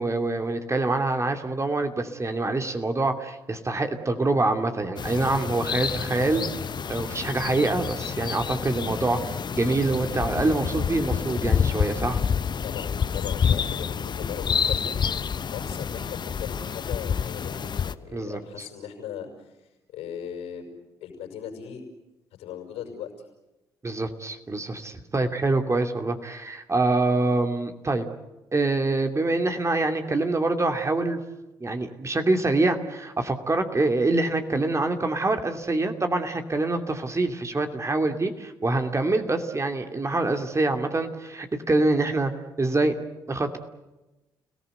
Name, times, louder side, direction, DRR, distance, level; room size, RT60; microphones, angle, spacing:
voice 1, 0.0-6.5 6.9-12.2 18.1-18.4 23.8-28.1 28.5-31.2 31.6-42.3 42.6-43.0 43.3-43.6, right 2 dB, 25° right, 5 dB, 2.8 m, -25 dB
sound 1, 5.0-17.9, left 7 dB, 45° left, 1.0 m, -28 dB
voice 2, 12.6-15.0 15.4-20.7 21.0-21.8 22.4-23.1, left 8 dB, 70° left, 3 dB, 6.0 m, -38 dB
30.0 x 18.5 x 8.0 m, 1.0 s
hypercardioid pair, 45°, 11 cm